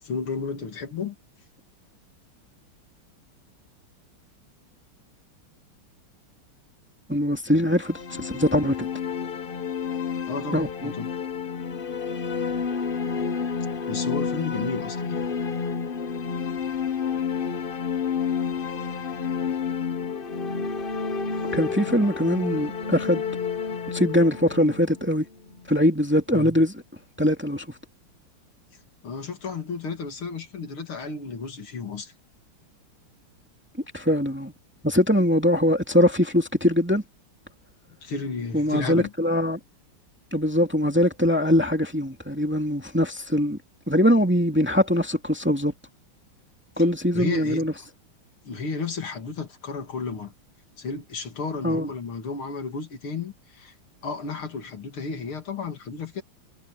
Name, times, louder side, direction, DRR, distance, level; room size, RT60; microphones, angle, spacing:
voice 1, 0.0-1.2 10.3-11.1 13.9-15.2 26.3-26.6 29.0-32.1 38.0-39.1 46.8-46.9 47.1-47.7 48.4-50.3 50.8-53.7 54.0-56.2, left 4 dB, 80° left, 3.3 m, -32 dB
voice 2, 7.1-8.9 10.5-10.9 21.5-23.2 23.9-25.3 25.7-26.7 27.2-27.7 33.9-34.5 34.8-37.0 38.5-39.6 40.3-43.6 43.9-45.7 46.8-47.7 51.6-51.9, equal, 5° right, 2.2 m, -22 dB
sound 1, 7.7-25.6, left 6 dB, 40° left, 0.7 m, -30 dB
omnidirectional pair, 2.3 m